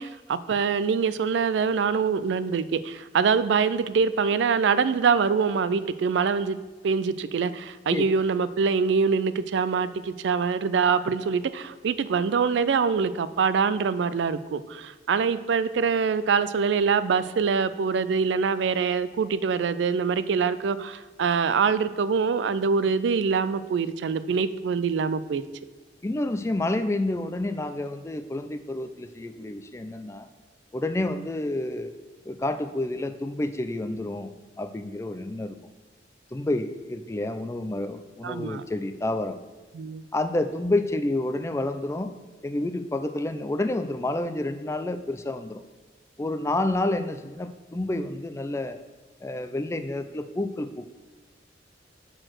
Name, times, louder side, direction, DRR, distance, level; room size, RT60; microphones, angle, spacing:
voice 1, 0.0-6.6 6.8-25.4 38.2-38.6 39.7-40.0, right 5 dB, 75° right, 14 dB, 0.4 m, -24 dB
voice 2, 26.0-30.3 30.7-31.9 32.3-35.6 36.3-39.4 40.1-42.1 42.4-45.6 46.2-48.8 49.2-50.8, left 2 dB, 15° left, 9 dB, 0.3 m, -29 dB
6.6 x 4.5 x 6.0 m, 1.3 s
head